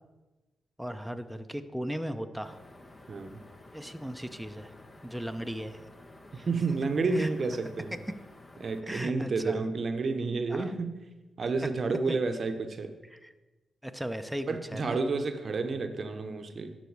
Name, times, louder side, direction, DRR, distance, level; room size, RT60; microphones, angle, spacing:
voice 1, 0.8-2.6 3.7-4.7 5.0-5.8 6.3-6.5 7.1-7.3 8.9-9.6 10.5-10.7 12.1-12.2 13.2-13.3 13.8-15.0, equal, ahead, 7 dB, 0.6 m, -37 dB
sound 1, 2.4-8.8, left 2 dB, 40° left, 1.0 m, -52 dB
voice 2, 3.1-3.4 6.3-8.0 8.6-10.9 11.4-12.9 14.5-16.7, right 3 dB, 55° right, 8 dB, 0.7 m, -30 dB
11.5 x 4.1 x 4.7 m, 1.2 s
hypercardioid pair, 40°, 0 cm